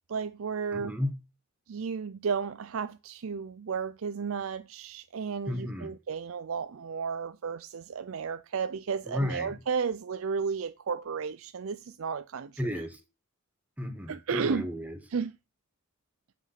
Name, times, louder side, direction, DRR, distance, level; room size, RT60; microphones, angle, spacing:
voice 1, 0.1-0.9 1.7-12.6 14.1-14.7 15.1-15.3, right 6 dB, 75° right, 0.5 m, -33 dB
voice 2, 0.7-1.1 5.5-5.9 9.1-9.6 12.6-13.0 13.8-15.0, equal, 5° right, 1.8 m, -33 dB
8.1 x 6.0 x 5.8 m
head